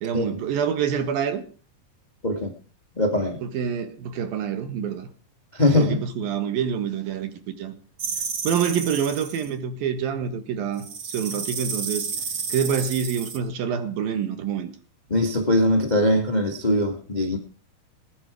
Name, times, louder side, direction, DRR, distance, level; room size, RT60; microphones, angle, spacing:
voice 1, 0.0-1.4 3.4-5.1 5.8-7.3 7.6-7.7 8.4-12.1 12.5-14.7, right 7 dB, 80° right, 3.5 m, -26 dB
voice 2, 3.0-3.4 5.5-6.0 15.1-17.4, left 1 dB, 30° left, 0.7 m, -21 dB
sound 1, 8.0-9.5 10.8-13.4, right 5 dB, 45° right, 1.5 m, -31 dB
19.5 x 10.0 x 4.8 m
omnidirectional pair, 4.1 m